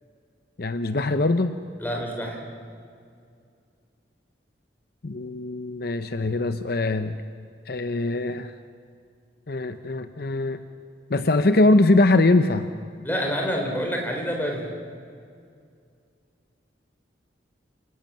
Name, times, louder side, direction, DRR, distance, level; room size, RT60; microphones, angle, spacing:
voice 1, 0.6-1.5 5.0-7.2 7.7-8.5 9.5-10.6 11.1-12.7, left 2 dB, 55° left, 10 dB, 0.7 m, -22 dB
voice 2, 1.8-2.4 13.0-14.7, equal, 10° left, 1 dB, 3.9 m, -27 dB
28.0 x 18.0 x 7.5 m, 2.3 s
head